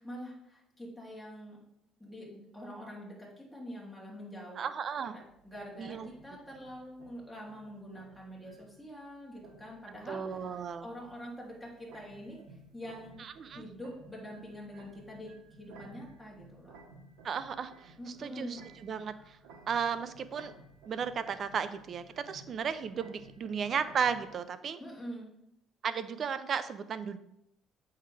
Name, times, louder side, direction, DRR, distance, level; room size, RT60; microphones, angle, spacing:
voice 1, 0.0-1.6 2.0-4.6 5.0-16.8 18.0-18.6 24.8-25.3, equal, ahead, -5 dB, 2.8 m, -45 dB
voice 2, 4.6-5.2 5.8-6.1 10.1-10.9 13.2-13.6 17.2-17.9 18.2-19.4 19.7-20.5 20.9-24.8 25.8-27.2, right 6 dB, 45° right, 13 dB, 0.6 m, -34 dB
sound 1, 5.2-24.3, right 3 dB, 85° right, 1.3 m, -56 dB
7.9 x 5.7 x 3.3 m, 0.79 s
cardioid pair, 100°, 0 cm